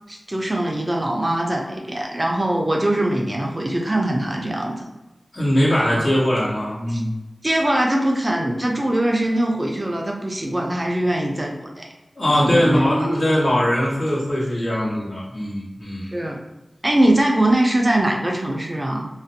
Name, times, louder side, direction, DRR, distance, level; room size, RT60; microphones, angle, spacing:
voice 1, 0.1-4.9 5.9-6.2 6.9-7.0 7.4-11.9 12.3-13.1 16.1-16.4 16.8-19.1, right 1 dB, 30° right, 0 dB, 0.4 m, -22 dB
voice 2, 5.3-7.1 12.2-16.1, equal, 55° left, -7 dB, 1.1 m, -21 dB
2.4 x 2.1 x 2.6 m, 1.0 s
cardioid pair, 40°, 0 cm